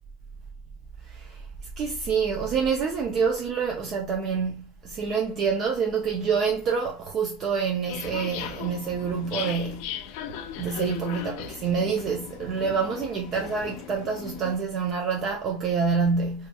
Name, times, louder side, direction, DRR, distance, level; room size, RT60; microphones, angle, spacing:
voice 1, 1.0-1.4 1.8-10.0 10.6-16.5, right 5 dB, 35° right, 0.4 m, -27 dB
sound 1, 7.9-14.6, left 9 dB, 65° left, 0.3 m, -37 dB
2.7 x 2.4 x 2.2 m
supercardioid pair, 145°, 0 cm